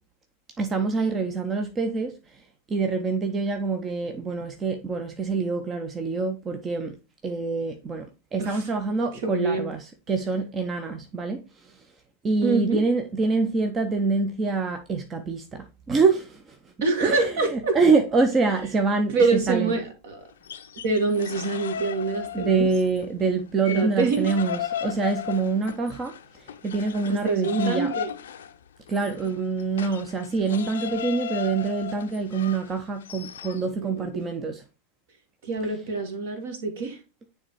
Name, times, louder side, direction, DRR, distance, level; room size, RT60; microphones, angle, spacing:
voice 1, 0.6-2.1 2.7-6.9 7.2-8.1 8.3-11.4 12.2-16.4 17.0-19.7 22.3-26.1 26.6-27.9 28.9-34.6, right 4 dB, 20° right, 0.6 m, -25 dB
voice 2, 8.4-8.7 9.2-9.7 12.4-12.8 16.8-17.8 19.1-20.2 20.8-22.7 23.7-24.3 27.0-28.1 29.2-29.3 33.6-34.1 35.4-37.0, right 3 dB, 55° right, 1.7 m, -25 dB
sound 1, 20.3-23.1 23.4-33.7, left 9 dB, 65° left, 0.5 m, -36 dB
9.8 x 3.4 x 3.0 m
figure-of-eight pair, 90°, 0 cm